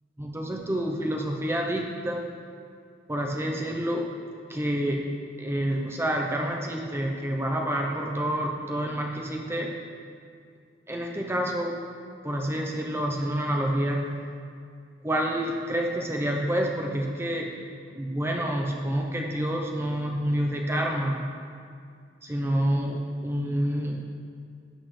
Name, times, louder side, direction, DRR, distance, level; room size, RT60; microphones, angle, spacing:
voice 1, 0.2-2.2 3.1-4.1 4.5-5.0 5.4-9.7 10.9-11.7 12.2-14.2 15.0-17.5 17.9-21.2 22.2-24.0, right 1 dB, 15° right, 0 dB, 0.6 m, -28 dB
13.0 x 8.2 x 3.2 m, 2.3 s
head